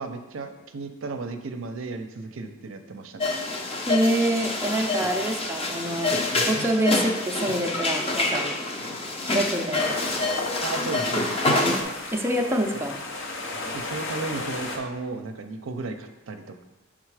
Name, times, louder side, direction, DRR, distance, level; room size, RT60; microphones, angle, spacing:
voice 1, 0.0-3.3 10.6-11.4 13.7-16.6, right 3 dB, 70° right, 6 dB, 0.5 m, -34 dB
sound 1, 3.2-11.8, left 2 dB, 30° left, 0.7 m, -27 dB
voice 2, 3.9-6.1 6.5-8.5 9.2-9.9 12.1-13.0, right 1 dB, 10° right, 2 dB, 0.5 m, -26 dB
sound 2, 9.8-14.8, left 2 dB, 65° left, 0.9 m, -34 dB
6.5 x 3.8 x 4.8 m, 1.0 s
head